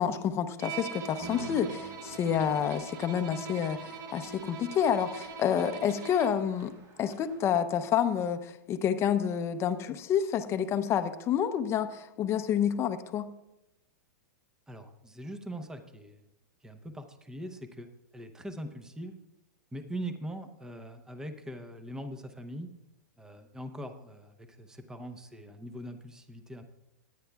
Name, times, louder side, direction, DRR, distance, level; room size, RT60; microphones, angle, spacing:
voice 1, 0.0-6.7 7.0-13.3, left 8 dB, 25° left, 7 dB, 0.7 m, -29 dB
Bowed string instrument, 0.6-6.5, right 5 dB, 70° right, 1.3 m, -42 dB
sound 1, 1.2-7.5, right 2 dB, 30° right, 1.6 m, -50 dB
voice 2, 14.7-16.2 16.6-19.2 19.7-22.7 23.2-26.6, right 1 dB, 5° right, 8 dB, 0.8 m, -42 dB
20.0 x 9.3 x 2.3 m, 0.89 s
hypercardioid pair, 130°, 10 cm